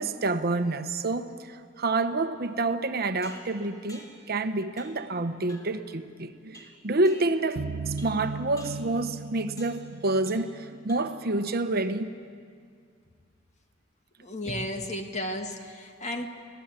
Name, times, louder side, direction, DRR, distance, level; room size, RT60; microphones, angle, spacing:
voice 1, 0.0-12.1, right 2 dB, 55° right, 1.0 m, -28 dB
sound 1, 3.2-4.3 4.8-5.1 5.5-5.8 6.5-7.6 8.0-8.3 8.6-8.9 9.6-9.9 10.3-10.6 10.9-11.3, left 1 dB, 20° left, 3.2 m, -51 dB
sound 2, 7.6-11.3, right 4 dB, 90° right, 0.7 m, -37 dB
voice 2, 14.2-16.3, left 1 dB, 40° left, 1.8 m, -33 dB
26.5 x 17.5 x 9.0 m
head